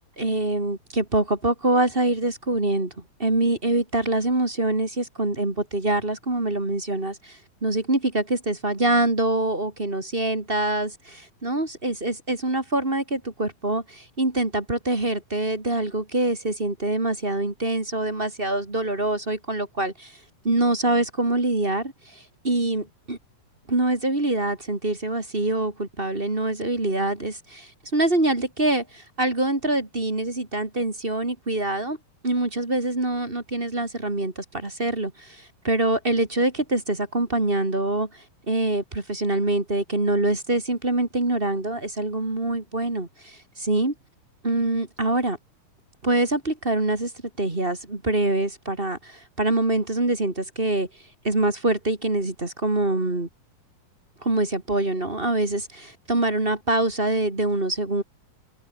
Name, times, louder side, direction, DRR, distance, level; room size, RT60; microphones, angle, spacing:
voice 1, 0.2-2.9 3.2-20.2 20.4-23.2 23.7-32.0 32.2-43.9 44.4-45.4 46.0-47.1 47.4-50.9 51.2-53.3 54.2-58.0, right 2 dB, 15° right, 2.6 m, -25 dB
omnidirectional pair, 4.0 m